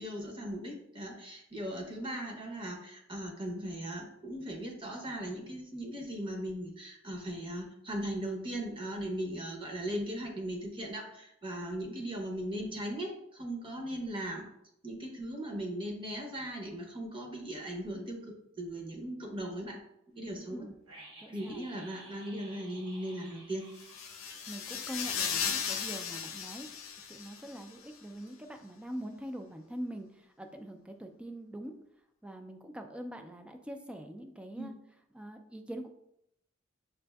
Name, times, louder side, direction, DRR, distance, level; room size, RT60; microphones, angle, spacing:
voice 1, 0.0-14.5 14.8-19.8 20.1-20.6 21.3-23.7 34.5-34.8, right 1 dB, 25° right, 1 dB, 0.7 m, -38 dB
voice 2, 20.4-20.8 21.2-21.6 24.5-26.7 27.1-31.7 32.2-34.7 35.1-35.9, equal, 5° right, 5 dB, 0.3 m, -43 dB
sound 1, 20.9-25.7 25.9-26.0, right 2 dB, 90° right, 1.1 m, -54 dB
sound 2, 23.8-27.6, left 7 dB, 85° left, 0.6 m, -36 dB
6.3 x 2.5 x 2.3 m, 0.78 s
head